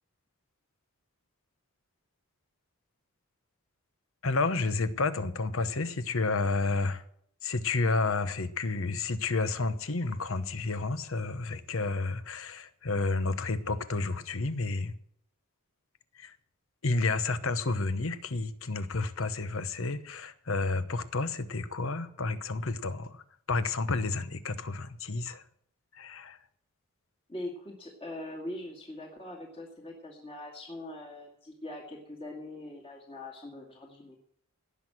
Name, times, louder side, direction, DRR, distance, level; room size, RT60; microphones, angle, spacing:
voice 1, 4.2-7.0 7.4-14.9 16.2-16.3 16.8-23.2 23.5-25.4 26.0-26.4, left 3 dB, 65° left, 1.0 m, -30 dB
voice 2, 27.3-34.2, left 1 dB, 25° left, 2.1 m, -42 dB
18.0 x 6.3 x 7.7 m
head